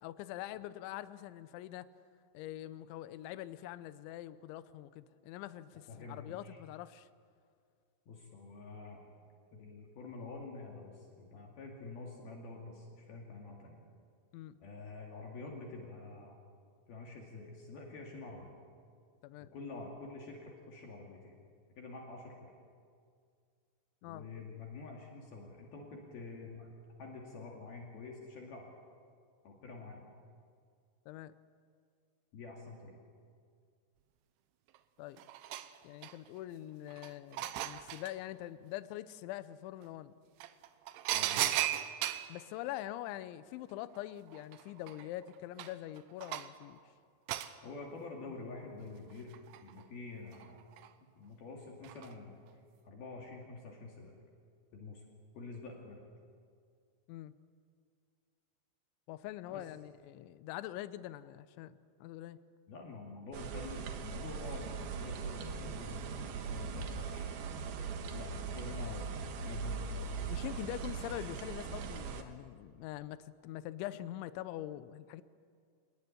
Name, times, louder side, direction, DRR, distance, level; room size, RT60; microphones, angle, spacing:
voice 1, 0.0-1.9 2.3-7.1 14.3-14.6 19.2-19.5 24.0-24.2 31.1-31.3 35.0-35.2 35.8-40.1 42.3-46.8 57.1-57.3 59.1-62.4 70.3-75.2, left 14 dB, 80° left, 14 dB, 3.1 m, -44 dB
voice 2, 5.9-6.6 8.1-9.1 9.5-13.8 14.6-16.4 16.9-18.5 19.4-21.4 21.8-22.5 24.0-26.7 27.0-28.7 29.4-30.1 32.3-33.0 41.1-41.6 47.6-50.6 51.2-52.4 52.8-54.1 54.7-55.0 55.3-56.0 59.5-59.7 62.7-67.3 68.1-70.1, left 3 dB, 60° left, 0 dB, 4.0 m, -47 dB
sound 1, 34.7-34.8 35.2-36.4 36.9-38.1 39.8-39.9 40.4-42.3 43.9-44.0 44.3-46.6 47.3-47.5 49.1-49.8 50.3-50.9 51.8-52.1 52.5-52.6, right 13 dB, 85° right, 3.3 m, -37 dB
sound 2, 63.3-72.2, right 5 dB, 65° right, 3.0 m, -40 dB
27.0 x 19.5 x 9.8 m, 2.2 s
omnidirectional pair, 5.4 m